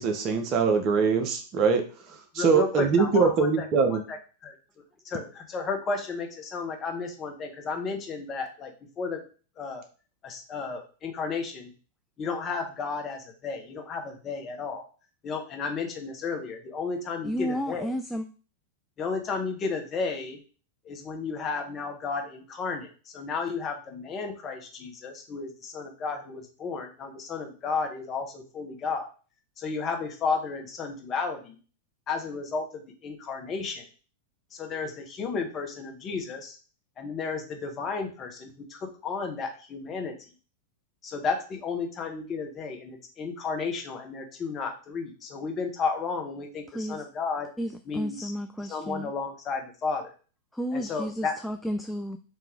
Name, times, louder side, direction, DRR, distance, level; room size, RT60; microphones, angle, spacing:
voice 1, 0.0-1.8 2.3-4.0, right 5 dB, 40° right, 5 dB, 0.8 m, -23 dB
voice 2, 2.4-4.2 4.4-4.5 5.0-9.2 9.6-9.8 10.2-11.7 12.2-14.8 15.2-17.9 19.0-20.4 20.8-22.9 23.1-29.1 29.6-31.6 32.1-33.8 34.5-36.6 37.0-40.1 41.0-47.5 47.8-48.3 48.7-50.1 50.7-51.4, left 4 dB, 30° left, 3 dB, 1.0 m, -33 dB
voice 3, 17.2-18.3 46.7-47.0 47.6-49.1 50.5-52.2, equal, 5° left, 6 dB, 0.3 m, -32 dB
3.5 x 2.9 x 3.5 m, 0.37 s
figure-of-eight pair, 95°, 0 cm